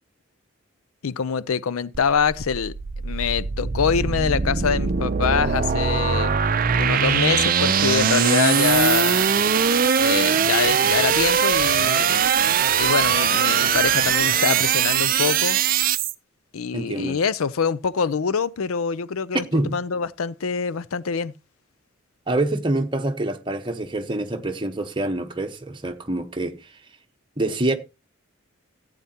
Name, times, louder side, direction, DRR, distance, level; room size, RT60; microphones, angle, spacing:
voice 1, 1.0-2.7 3.0-6.3 6.8-9.4 10.0-12.2 12.8-15.6 16.5-21.3, left 6 dB, 90° left, 0.5 m, -25 dB
sound 1, 1.9-16.1, right 7 dB, 40° right, 0.5 m, -21 dB
voice 2, 16.7-17.2 19.5-19.8 22.3-26.6 27.4-27.8, right 2 dB, 20° right, 1.0 m, -26 dB
15.0 x 8.8 x 2.9 m
head